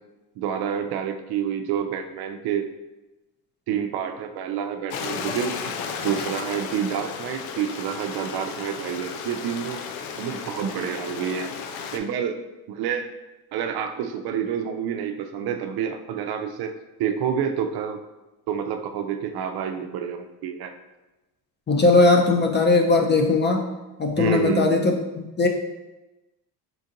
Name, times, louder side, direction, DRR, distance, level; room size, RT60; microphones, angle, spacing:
voice 1, 0.4-2.7 3.7-5.6 6.0-9.8 10.2-11.5 11.9-12.4 12.7-13.1 13.5-18.0 18.5-20.7 24.2-24.8, right 8 dB, 55° right, 6 dB, 0.5 m, -28 dB
Stream, 4.9-12.0, left 6 dB, 75° left, 0.6 m, -34 dB
voice 2, 21.7-23.7 24.0-25.5, left 3 dB, 25° left, 2 dB, 0.5 m, -19 dB
4.4 x 2.6 x 2.5 m, 1.1 s
hypercardioid pair, 55°, 47 cm